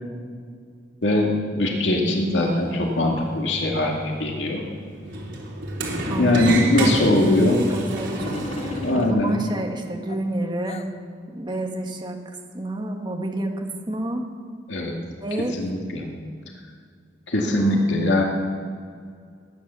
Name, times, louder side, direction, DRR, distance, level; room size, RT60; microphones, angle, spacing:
voice 1, 1.0-4.6 6.2-7.6 8.8-9.4 14.7-15.0 15.6-16.1 17.3-18.2, left 1 dB, 80° left, 0 dB, 2.1 m, -21 dB
Sliding door, 2.0-9.1, right 2 dB, 90° right, 3.4 m, -31 dB
voice 2, 6.1-10.8 11.3-14.2 15.2-15.6 17.5-18.2, right 1 dB, 25° right, 2 dB, 1.6 m, -30 dB
sound 1, 8.1-9.5 10.1-10.9, left 2 dB, 35° left, 0.7 m, -34 dB
19.5 x 9.7 x 7.0 m, 2.2 s
head